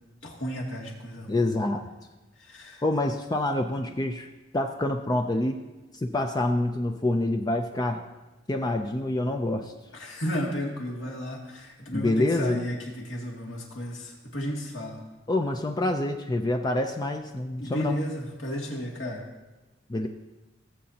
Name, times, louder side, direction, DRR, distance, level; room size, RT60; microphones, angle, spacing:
voice 1, 0.2-1.4 2.4-2.8 4.0-4.1 9.9-15.0 17.6-19.2, equal, 75° left, -2 dB, 2.3 m, -33 dB
voice 2, 1.3-1.8 2.8-4.3 4.5-5.6 5.9-8.0 8.5-9.7 11.9-12.6 15.3-18.0 19.9-20.1, left 1 dB, 20° left, 4 dB, 0.4 m, -26 dB
17.5 x 7.6 x 2.8 m, 1.1 s
head